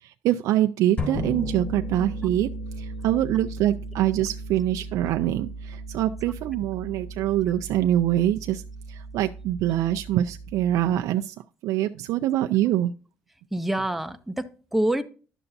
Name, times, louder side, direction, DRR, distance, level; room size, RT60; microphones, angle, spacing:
voice 1, 0.0-2.5 2.8-8.6 8.9-11.4 11.6-12.9, right 13 dB, 75° right, 0.3 m, -24 dB
sound 1, 1.0-2.7, left 3 dB, 25° left, 3.5 m, -34 dB
Bass guitar, 1.1-11.0, right 2 dB, 65° left, 1.4 m, -37 dB
voice 2, 13.5-15.0, right 1 dB, 5° right, 0.6 m, -26 dB
11.0 x 6.8 x 2.6 m
cardioid pair, 100°, 6 cm